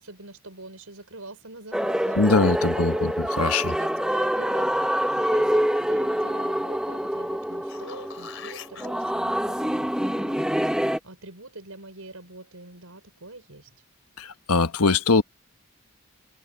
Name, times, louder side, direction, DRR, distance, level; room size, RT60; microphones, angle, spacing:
voice 1, 0.0-2.2 2.6-3.3 3.6-13.7, right 2 dB, 75° right, 5.5 m, -44 dB
sound 1, 1.7-11.0, equal, 5° right, 0.7 m, -26 dB
voice 2, 2.2-3.7 14.2-15.2, left 3 dB, 90° left, 1.3 m, -22 dB
sound 2, 7.4-8.9 13.7-13.8, left 7 dB, 60° left, 5.3 m, -42 dB
head